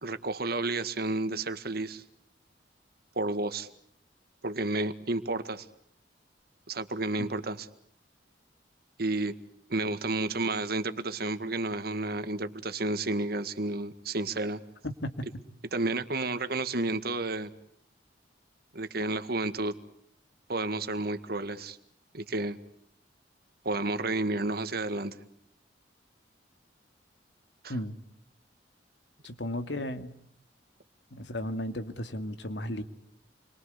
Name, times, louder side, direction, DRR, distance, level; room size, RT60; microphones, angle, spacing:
voice 1, 0.0-2.0 3.2-3.7 4.4-5.7 6.7-7.7 9.0-9.4 9.7-14.6 15.7-17.5 18.7-19.8 20.5-21.8 22.1-22.6 23.6-25.2 27.6-27.8, right 2 dB, 60° right, 10 dB, 1.9 m, -31 dB
voice 2, 14.8-15.3 27.7-28.0 29.2-30.1 31.1-32.8, left 1 dB, 80° left, 8 dB, 2.3 m, -34 dB
29.5 x 23.5 x 8.3 m, 0.68 s
head